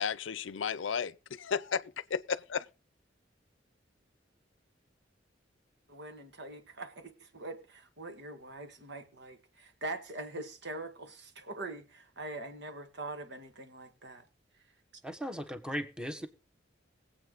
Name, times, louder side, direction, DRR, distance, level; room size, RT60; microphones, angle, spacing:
voice 1, 0.0-2.7, left 6 dB, 75° left, 0.6 m, -34 dB
voice 2, 5.9-14.2, right 2 dB, 65° right, 1.9 m, -43 dB
voice 3, 15.0-16.3, equal, 5° right, 1.3 m, -37 dB
21.0 x 8.2 x 3.9 m
head